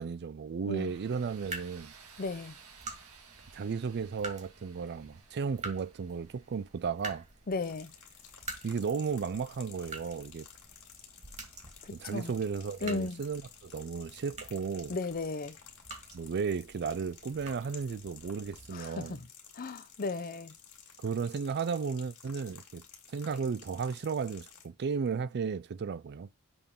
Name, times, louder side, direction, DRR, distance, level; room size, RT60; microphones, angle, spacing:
voice 1, 0.0-1.9 3.5-7.3 8.6-10.5 11.9-15.0 16.1-19.2 21.0-22.8 23.1-26.3, right 5 dB, 50° right, 0.4 m, -34 dB
Tools, 0.8-9.5, right 6 dB, 75° right, 1.9 m, -58 dB
sound 1, 0.9-18.7, right 2 dB, 30° right, 2.1 m, -48 dB
voice 2, 2.2-2.5 7.5-7.9 11.8-12.3 12.8-13.2 14.9-15.6 18.7-19.2 19.5-20.5, left 3 dB, 40° left, 0.6 m, -35 dB
sound 2, 7.6-24.7, left 8 dB, 70° left, 2.1 m, -53 dB
7.0 x 3.6 x 5.4 m
head